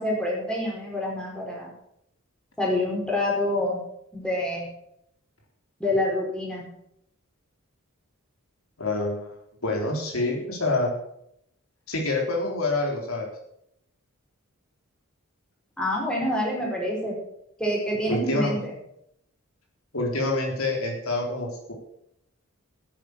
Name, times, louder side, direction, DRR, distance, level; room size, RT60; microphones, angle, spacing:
voice 1, 0.0-1.7 2.6-3.8 4.1-4.7 5.8-6.7 15.8-17.1 17.6-18.7, left 1 dB, 5° left, -3 dB, 4.9 m, -27 dB
voice 2, 8.8-9.3 9.6-10.9 11.9-13.3 18.1-18.7 19.9-21.7, left 2 dB, 70° left, 0 dB, 3.7 m, -27 dB
9.8 x 9.7 x 8.2 m, 0.75 s
head